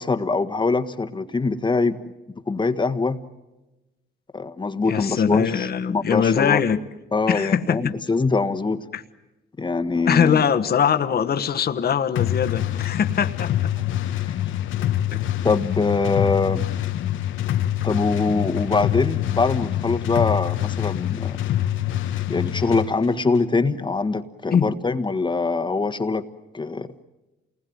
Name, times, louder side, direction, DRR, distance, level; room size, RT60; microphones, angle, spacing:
voice 1, 0.0-2.1 2.5-3.2 4.3-6.6 7.1-8.8 9.6-10.4 15.4-16.7 17.8-21.4 22.3-26.2 26.5-26.9, left 3 dB, 25° left, 8 dB, 1.4 m, -23 dB
voice 2, 4.9-6.8 7.3-7.9 8.9-9.0 10.1-13.7 15.1-15.2 24.5-24.7, left 7 dB, 50° left, 9 dB, 1.3 m, -22 dB
sound 1, 12.2-22.9, left 12 dB, 80° left, 1.1 m, -25 dB
28.5 x 20.0 x 9.3 m, 1.0 s
cardioid pair, 90°, 20 cm